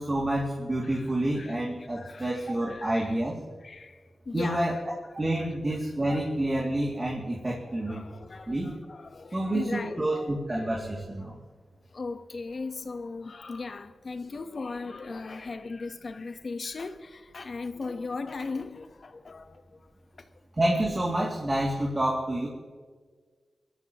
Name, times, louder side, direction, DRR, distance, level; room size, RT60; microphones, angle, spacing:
voice 1, 0.0-3.4 4.3-4.8 5.1-8.0 8.5-8.7 9.3-11.4 20.6-22.5, right 1 dB, 30° right, 2.5 m, -28 dB
voice 2, 1.4-3.2 3.6-4.7 5.4-5.5 7.6-11.4 11.9-19.9, left 3 dB, 55° left, 1.1 m, -38 dB
22.5 x 13.0 x 3.0 m
cardioid pair, 70°, 0 cm